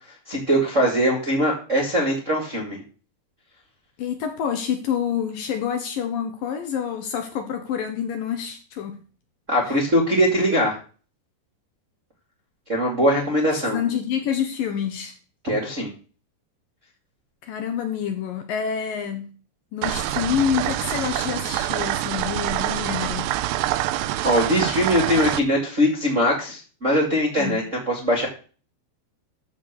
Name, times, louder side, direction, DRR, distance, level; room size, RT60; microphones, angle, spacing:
voice 1, 0.3-2.8 9.5-10.7 12.7-13.8 15.4-15.9 24.2-28.3, equal, 25° right, 1.6 m, -21 dB
voice 2, 4.0-9.0 9.7-9.8 13.7-15.1 17.4-19.3 19.7-23.3 27.4-27.6, left 8 dB, 70° left, 2.5 m, -27 dB
sound 1, 19.8-25.4, right 14 dB, 80° right, 2.7 m, -26 dB
13.5 x 4.8 x 6.8 m
omnidirectional pair, 4.9 m